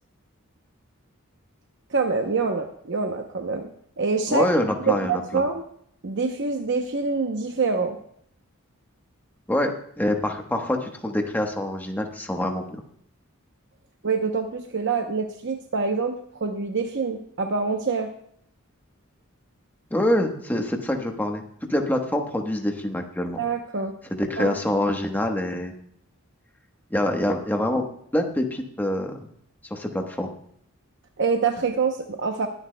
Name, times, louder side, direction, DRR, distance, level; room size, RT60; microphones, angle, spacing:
voice 1, 1.9-3.7 4.0-4.5 4.9-5.6 6.0-8.0 14.0-18.1 23.4-23.9 24.4-24.8 31.2-32.5, right 4 dB, 60° right, 4 dB, 0.8 m, -25 dB
voice 2, 4.3-5.4 9.5-12.8 19.9-21.4 21.7-23.4 24.1-25.7 26.9-27.9 28.1-29.2 29.7-30.3, left 1 dB, 10° left, 3 dB, 1.1 m, -25 dB
21.0 x 10.0 x 2.2 m, 0.66 s
head